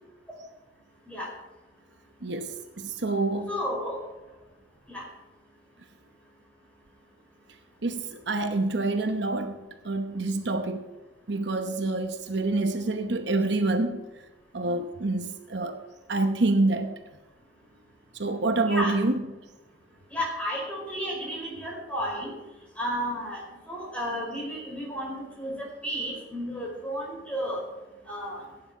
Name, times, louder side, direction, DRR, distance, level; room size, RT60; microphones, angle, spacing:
voice 1, 2.2-3.6 7.8-10.9 11.3-14.0 14.5-15.8 16.1-17.0 18.1-19.2, right 2 dB, 60° right, 0.9 m, -27 dB
voice 2, 3.5-4.0 4.9-5.0 18.7-18.9 20.1-22.3 22.8-27.6 28.0-28.4, equal, 5° left, 5.1 m, -32 dB
16.0 x 9.9 x 4.4 m
head